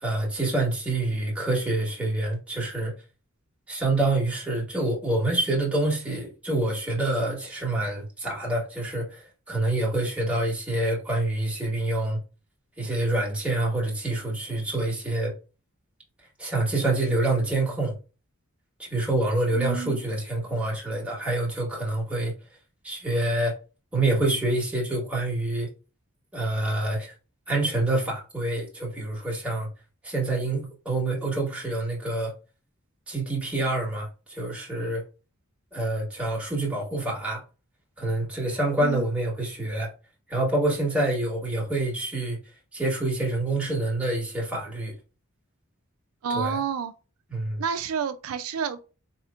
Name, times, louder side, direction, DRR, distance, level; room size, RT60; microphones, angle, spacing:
voice 1, 0.0-2.9 3.7-12.2 12.8-15.3 16.4-18.0 18.8-22.3 22.8-23.6 23.9-25.7 26.3-27.1 27.5-29.7 30.0-32.3 33.1-35.0 35.7-37.4 38.0-39.9 40.3-42.4 42.7-44.9 46.3-46.6 47.3-47.6, right 2 dB, 5° right, 1.3 m, -27 dB
voice 2, 19.5-20.0 38.8-39.0 46.2-46.9 47.6-48.8, right 6 dB, 70° right, 0.4 m, -29 dB
4.0 x 2.9 x 2.4 m
head